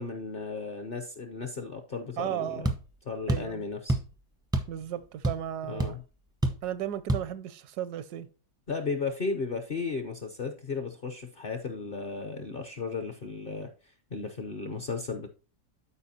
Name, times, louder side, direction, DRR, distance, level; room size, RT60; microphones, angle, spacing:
voice 1, 0.0-2.7 3.1-4.0 5.7-6.0 8.7-13.7 14.1-15.3, left 4 dB, 50° left, 0.6 m, -35 dB
voice 2, 2.2-2.7 3.3-3.6 4.7-6.0 6.6-8.3, right 11 dB, 80° right, 1.1 m, -35 dB
sound 1, 2.6-2.8 3.3-3.5 3.9-4.1 4.5-4.8 5.0-5.5 5.8-5.9 6.4-6.7 7.1-7.3, right 1 dB, 5° right, 0.4 m, -27 dB
12.5 x 4.7 x 2.8 m
omnidirectional pair, 1.7 m